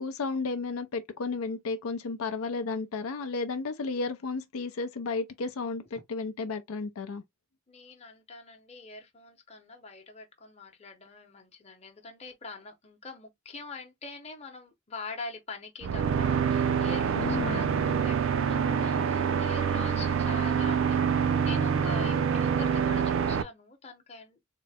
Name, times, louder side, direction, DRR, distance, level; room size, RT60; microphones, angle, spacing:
voice 1, 0.0-7.2 17.2-17.6, left 4 dB, 80° left, 0.5 m, -33 dB
voice 2, 7.7-21.0 21.4-24.5, left 3 dB, 30° left, 0.8 m, -44 dB
sound 1, 15.8-23.4, right 7 dB, 65° right, 0.4 m, -26 dB
3.7 x 2.1 x 3.4 m
head